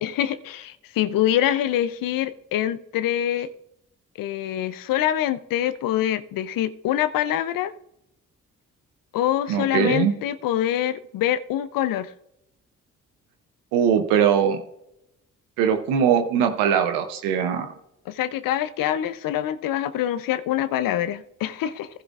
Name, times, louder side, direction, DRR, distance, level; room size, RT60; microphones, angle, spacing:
voice 1, 0.0-3.5 4.2-7.7 9.1-12.1 18.1-21.9, left 11 dB, 75° left, 0.6 m, -25 dB
voice 2, 9.5-10.1 13.7-14.6 15.6-17.7, right 8 dB, 90° right, 0.8 m, -21 dB
15.0 x 11.0 x 2.5 m
hypercardioid pair, 45°, 34 cm